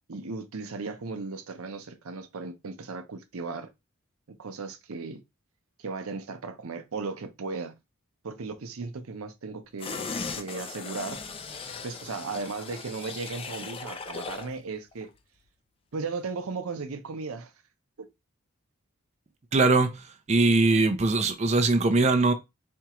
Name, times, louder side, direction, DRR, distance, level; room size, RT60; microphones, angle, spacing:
voice 1, 0.1-3.7 4.3-5.2 5.8-7.7 8.2-10.0 10.4-11.2 11.8-15.1 15.9-17.5 18.0-18.1, right 4 dB, 75° right, 0.6 m, -36 dB
sound 1, 9.8-14.5 14.9-15.0, left 4 dB, 25° left, 0.3 m, -38 dB
voice 2, 19.5-22.3, right 3 dB, 30° right, 0.5 m, -22 dB
4.4 x 2.4 x 2.9 m
head